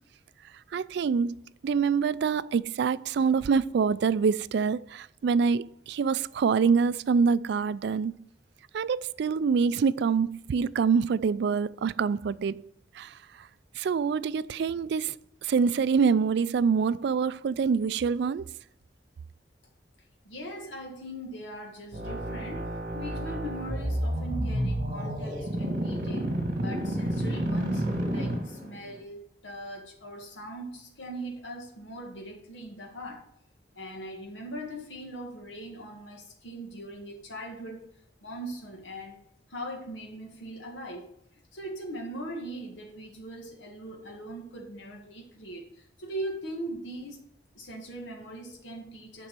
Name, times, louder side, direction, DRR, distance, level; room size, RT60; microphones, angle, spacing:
voice 1, 0.7-8.1 8.7-12.7 12.9-13.5 13.8-15.2 15.4-18.5, right 5 dB, 65° right, 0.3 m, -26 dB
voice 2, 20.2-27.9 28.1-33.3 33.7-37.9 38.2-39.2 39.5-41.1 41.5-47.2 47.5-49.3, right 1 dB, 85° left, 1.6 m, -40 dB
sound 1, 21.9-28.9, right 1 dB, 50° right, 1.7 m, -30 dB
7.3 x 5.3 x 6.7 m
head